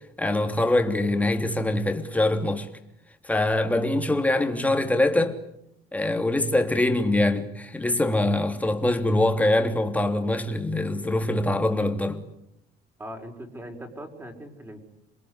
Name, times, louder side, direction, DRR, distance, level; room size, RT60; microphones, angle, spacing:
voice 1, 0.2-2.7 3.2-5.4 5.9-12.2, left 1 dB, 10° left, 3.1 m, -23 dB
voice 2, 13.0-14.8, equal, 15° right, 5.6 m, -40 dB
28.0 x 21.5 x 9.9 m
cardioid pair, 110°, 17 cm